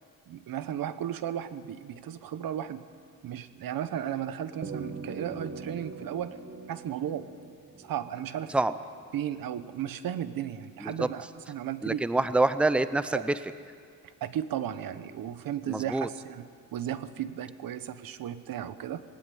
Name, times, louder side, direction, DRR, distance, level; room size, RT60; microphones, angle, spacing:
voice 1, 0.3-2.8 3.2-6.4 6.7-7.3 7.8-8.5 9.1-12.0 13.1-13.2 14.0-19.0, right 10 dB, 80° right, 13 dB, 1.1 m, -35 dB
sound 1, 4.6-9.2, right 4 dB, 35° right, 2.2 m, -42 dB
voice 2, 11.8-13.3 15.7-16.1, right 2 dB, 5° right, 13 dB, 0.7 m, -26 dB
18.5 x 18.0 x 9.2 m, 2.2 s
cardioid pair, 110°, 34 cm